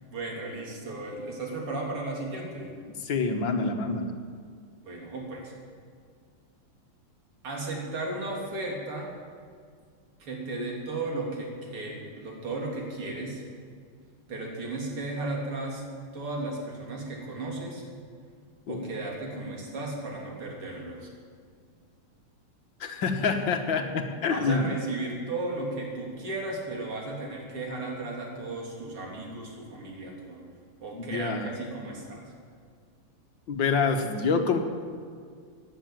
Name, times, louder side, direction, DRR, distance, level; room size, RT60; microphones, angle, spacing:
voice 1, 0.1-2.8 4.8-5.5 7.4-9.1 10.2-13.4 14.3-15.8 16.1-17.9 18.7-21.1 24.3-30.5 30.8-32.3, right 2 dB, 85° right, -1 dB, 4.0 m, -35 dB
voice 2, 3.0-4.1 18.7-18.9 22.8-24.7 30.9-31.5 33.5-34.6, left 4 dB, 60° left, 6 dB, 1.8 m, -27 dB
15.0 x 10.0 x 9.0 m, 2.1 s
omnidirectional pair, 2.4 m